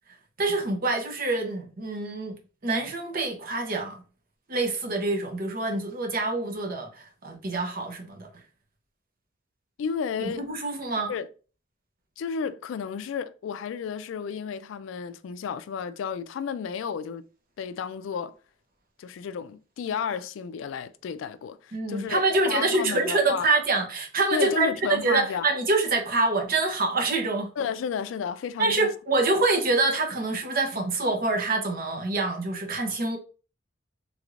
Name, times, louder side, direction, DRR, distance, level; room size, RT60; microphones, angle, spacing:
voice 1, 0.4-2.4 2.6-4.0 4.5-8.3 10.2-11.1 21.7-27.5 28.6-33.2, right 3 dB, 50° right, 0.8 m, -26 dB
voice 2, 9.8-10.4 11.1-11.3 12.2-17.3 17.6-18.3 19.0-22.2 22.5-23.5 24.3-25.5 27.6-28.9, left 6 dB, 75° left, 0.3 m, -32 dB
3.4 x 3.1 x 2.5 m
head